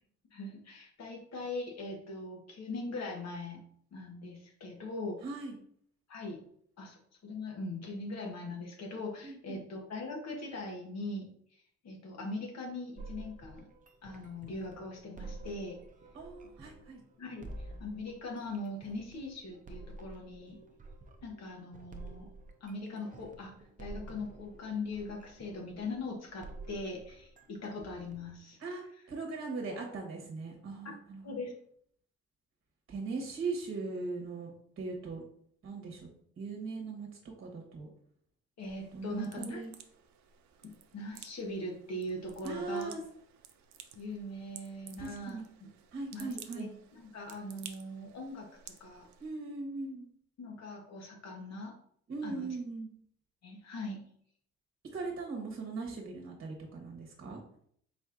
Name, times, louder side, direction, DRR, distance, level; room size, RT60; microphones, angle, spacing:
voice 1, 0.3-3.6 3.9-5.2 6.1-6.4 6.8-13.7 14.0-15.8 17.2-20.6 21.2-22.3 22.6-23.5 23.8-28.6 30.8-30.9 31.2-31.5 38.6-39.6 40.6-43.0 43.9-45.4 46.1-46.3 46.5-46.7 47.0-49.1 50.4-51.7 52.2-52.5 53.4-54.0, left 2 dB, 60° left, 1 dB, 1.2 m, -41 dB
voice 2, 5.2-5.6 9.2-9.6 16.1-17.0 28.6-31.3 32.9-35.2 35.6-36.1 36.4-37.1 37.4-37.9 38.9-39.7 42.4-43.0 45.0-45.4 45.9-46.7 49.2-50.1 52.1-52.9 54.9-57.4, right 3 dB, 45° right, 1 dB, 1.2 m, -39 dB
sound 1, 13.0-28.3, right 2 dB, 25° right, 0.7 m, -50 dB
sound 2, 38.6-49.3, right 8 dB, 65° right, 0.6 m, -54 dB
4.3 x 4.0 x 2.5 m, 0.64 s
cardioid pair, 90°, 30 cm